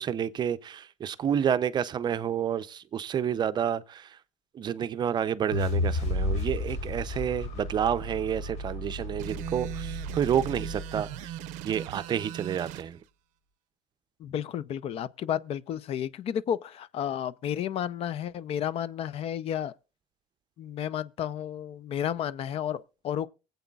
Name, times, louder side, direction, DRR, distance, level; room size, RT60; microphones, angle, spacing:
voice 1, 0.0-4.2 4.5-11.3 11.6-13.0, right 9 dB, 35° right, 0.5 m, -29 dB
sound 1, 5.5-11.7, left 1 dB, 70° left, 3.4 m, -33 dB
sound 2, 9.2-12.9, right 13 dB, 85° right, 0.5 m, -39 dB
voice 2, 14.2-19.7 20.6-23.3, left 9 dB, 50° left, 0.5 m, -32 dB
23.5 x 8.1 x 2.3 m
cardioid pair, 135°, 12 cm